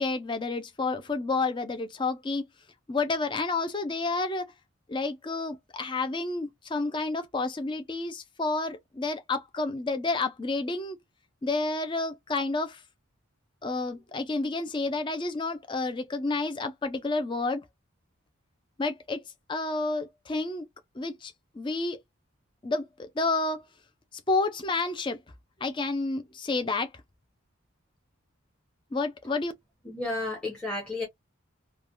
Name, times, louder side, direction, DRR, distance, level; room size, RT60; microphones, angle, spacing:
voice 1, 0.0-2.5 2.9-4.5 4.9-11.0 11.4-12.8 13.6-17.6 18.8-19.2 19.5-20.7 21.0-22.0 22.6-23.7 24.3-25.2 25.6-26.9 28.9-29.5, left 3 dB, 25° left, 0.4 m, -30 dB
voice 2, 29.8-31.0, left 2 dB, 5° left, 0.9 m, -32 dB
3.2 x 2.2 x 2.4 m
head